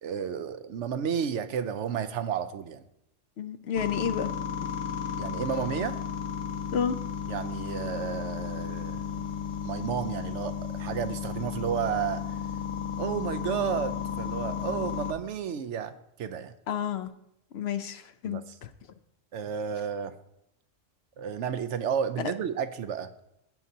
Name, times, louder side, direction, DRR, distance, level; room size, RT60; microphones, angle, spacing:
voice 1, 0.0-2.8 5.2-6.0 7.3-9.3 9.6-12.2 13.0-16.5 18.2-18.6 19.3-20.1 21.2-23.1, right 8 dB, 75° right, 11 dB, 0.9 m, -32 dB
voice 2, 3.4-4.3 6.7-7.0 16.7-17.1 17.5-18.7 22.2-22.3, left 8 dB, 65° left, 11 dB, 0.8 m, -30 dB
sound 1, 3.8-15.1, left 7 dB, 85° left, 1.4 m, -34 dB
15.0 x 9.0 x 2.8 m, 0.80 s
omnidirectional pair, 1.3 m